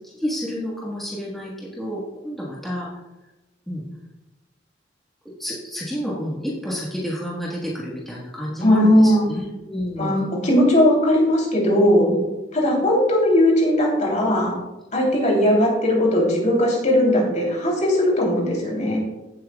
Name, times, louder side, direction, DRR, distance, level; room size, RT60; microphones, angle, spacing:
voice 1, 0.1-2.9 3.7-3.8 5.4-10.2 12.1-12.2, equal, ahead, -6 dB, 1.5 m, -30 dB
voice 2, 8.6-9.3 10.0-12.1 12.5-14.5 14.9-19.0, left 1 dB, 40° left, -2 dB, 3.3 m, -18 dB
16.0 x 7.8 x 2.3 m, 1.0 s
head